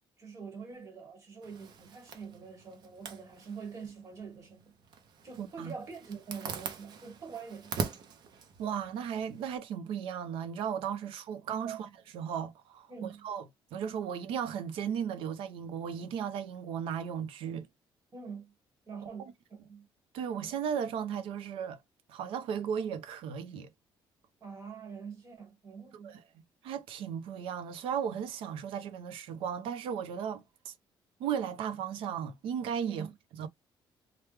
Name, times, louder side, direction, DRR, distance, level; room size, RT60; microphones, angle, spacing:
voice 1, 0.2-4.7 5.2-7.9 11.6-11.8 12.9-13.3 18.1-18.5 18.9-19.9 24.4-26.2 32.9-33.1, right 5 dB, 35° right, 1.5 m, -45 dB
Zipper (clothing), 1.4-9.6, right 6 dB, 50° right, 0.7 m, -43 dB
voice 2, 5.4-5.7 8.6-13.4 13.7-17.7 20.1-21.8 22.1-23.7 25.9-26.2 26.6-30.7 31.2-33.5, right 8 dB, 90° right, 0.6 m, -36 dB
3.3 x 2.2 x 3.2 m
cardioid pair, 170°, 9 cm